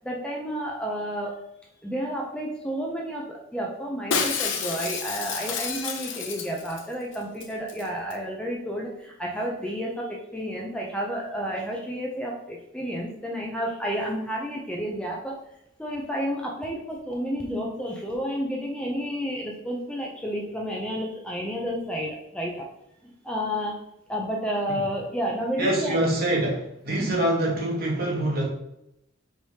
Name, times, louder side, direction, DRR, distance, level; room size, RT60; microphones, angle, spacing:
voice 1, 0.0-1.4 1.8-15.4 15.8-22.6 23.0-23.8 24.1-26.0 27.0-27.2, equal, 5° left, -2 dB, 0.4 m, -31 dB
Shatter, 4.1-6.8 7.1-7.2 7.4-7.8 8.1-8.2, left 6 dB, 65° left, 0.6 m, -29 dB
voice 2, 25.6-28.4, right 1 dB, 45° right, -2 dB, 1.1 m, -25 dB
4.6 x 3.3 x 2.7 m, 0.82 s
head